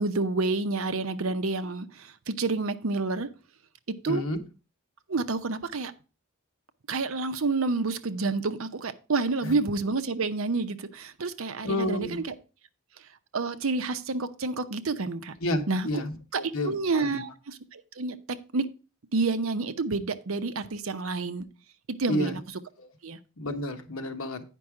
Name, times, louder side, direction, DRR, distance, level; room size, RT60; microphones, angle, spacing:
voice 1, 0.0-3.3 3.9-4.2 5.1-5.9 6.9-12.3 13.3-15.3 15.7-15.9 16.3-18.7 19.1-21.4 21.9-22.4 23.0-23.2, right 3 dB, 70° right, 11 dB, 0.7 m, -29 dB
voice 2, 4.1-4.4 9.4-9.5 11.6-12.2 15.4-17.2 22.1-22.4 22.8-22.9 23.4-24.4, left 1 dB, 75° left, 7 dB, 1.1 m, -30 dB
9.1 x 5.4 x 4.8 m, 0.33 s
head